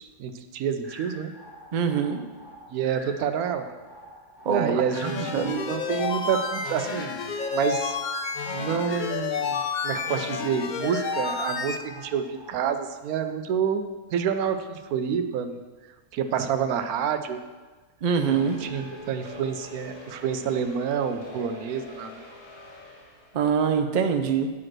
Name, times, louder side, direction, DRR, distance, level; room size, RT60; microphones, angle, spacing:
voice 1, 0.0-1.3 2.7-3.6 4.5-7.2 7.5-8.0 8.5-15.6 16.1-17.4 18.3-22.3, right 7 dB, 80° right, 8 dB, 1.1 m, -28 dB
sound 1, 0.8-12.8, equal, 15° right, 1.6 m, -47 dB
voice 2, 1.7-2.2 4.5-5.5 18.0-18.6 23.3-24.5, right 6 dB, 50° right, 6 dB, 0.6 m, -24 dB
sound 2, 4.9-11.8, left 5 dB, 85° left, 0.4 m, -30 dB
sound 3, 18.2-23.5, left 1 dB, 30° left, 1.8 m, -43 dB
9.6 x 5.1 x 6.0 m, 1.3 s
omnidirectional pair, 1.6 m